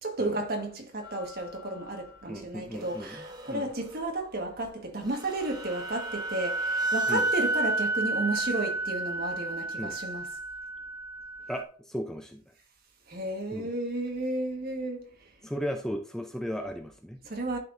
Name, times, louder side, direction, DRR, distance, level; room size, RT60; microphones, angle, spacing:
voice 1, 0.0-10.2 13.1-15.1 17.2-17.6, right 2 dB, 50° right, 1.6 m, -33 dB
sound 1, 1.0-1.8 2.8-4.1 4.6-4.7 5.1-11.6, right 2 dB, 20° right, 1.1 m, -32 dB
voice 2, 2.3-3.7 7.1-7.3 9.8-9.9 11.5-12.4 13.5-13.7 15.4-17.2, equal, 5° left, 0.6 m, -36 dB
11.0 x 4.5 x 2.6 m
head